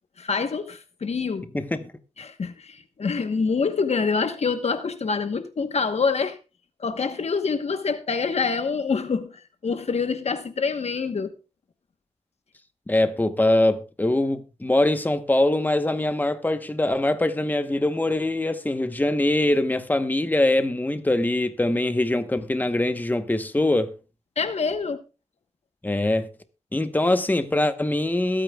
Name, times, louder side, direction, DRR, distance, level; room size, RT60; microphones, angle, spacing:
voice 1, 0.2-1.5 2.2-6.4 6.8-11.3 24.4-25.0, left 5 dB, 60° left, 1.1 m, -26 dB
voice 2, 12.9-24.0 25.8-26.3 26.7-28.4, left 1 dB, 15° left, 1.0 m, -23 dB
21.5 x 8.8 x 2.3 m
cardioid pair, 65°, 12 cm